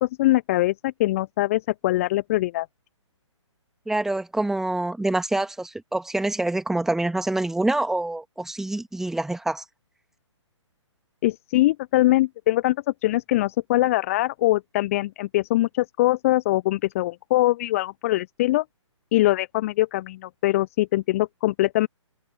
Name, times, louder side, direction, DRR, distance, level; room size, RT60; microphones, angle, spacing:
voice 1, 0.0-2.7 11.2-18.6 19.1-21.9, left 17 dB, 30° left, 0.6 m, -22 dB
voice 2, 3.9-9.6, right 2 dB, 5° right, 2.1 m, -26 dB
figure-of-eight pair, 130°, 16 cm